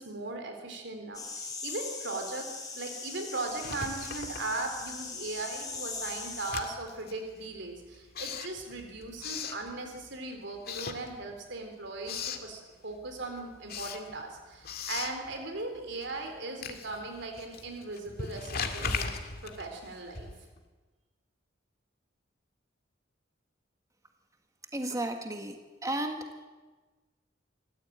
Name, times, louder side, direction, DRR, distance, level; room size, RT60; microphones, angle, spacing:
voice 1, 0.0-19.1 19.4-20.3, right 2 dB, 65° right, 4 dB, 3.8 m, -38 dB
sound 1, 1.1-6.5, left 4 dB, 20° left, 5.4 m, -40 dB
Writing, 3.5-5.1 5.4-10.2 10.6-11.6 11.8-12.5 12.9-20.6, left 5 dB, 50° left, 2.1 m, -39 dB
voice 2, 24.7-25.6 25.8-26.2, right 1 dB, 15° right, 5 dB, 1.5 m, -33 dB
27.0 x 14.5 x 8.8 m, 1.3 s
head